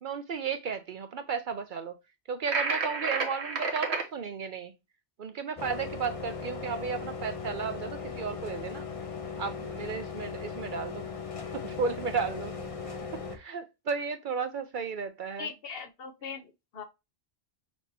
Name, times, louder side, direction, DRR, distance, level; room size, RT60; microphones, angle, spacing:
voice 1, 0.0-2.0 2.3-4.7 5.2-8.9 9.4-11.0 11.5-12.5 12.8-12.9 13.3-15.5, right 5 dB, 60° right, 0.6 m, -34 dB
sound 1, 2.5-4.1, right 4 dB, 75° right, 1.3 m, -30 dB
sound 2, 5.6-13.4, left 5 dB, 35° left, 0.7 m, -38 dB
voice 2, 15.4-16.8, left 5 dB, 65° left, 1.0 m, -40 dB
6.1 x 2.9 x 2.6 m
omnidirectional pair, 1.1 m